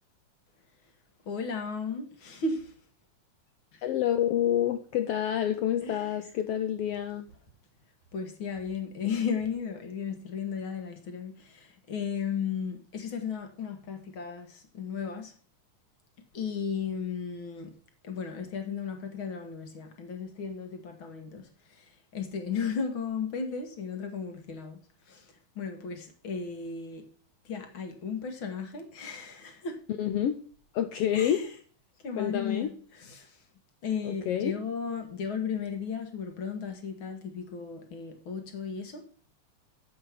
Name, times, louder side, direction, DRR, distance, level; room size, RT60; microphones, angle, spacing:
voice 1, 1.3-2.7 5.8-6.1 8.1-15.3 16.3-17.7 18.0-21.5 21.8-21.9 22.1-24.8 25.1-25.3 25.6-27.0 27.5-29.8 31.1-31.4 32.0-33.3 33.8-39.0, left 6 dB, 50° left, 6 dB, 1.9 m, -35 dB
voice 2, 3.8-7.2 30.0-30.4 30.7-31.4 32.2-32.7 34.0-34.5, left 10 dB, 80° left, 9 dB, 1.4 m, -28 dB
8.7 x 7.7 x 5.8 m, 0.43 s
omnidirectional pair, 3.5 m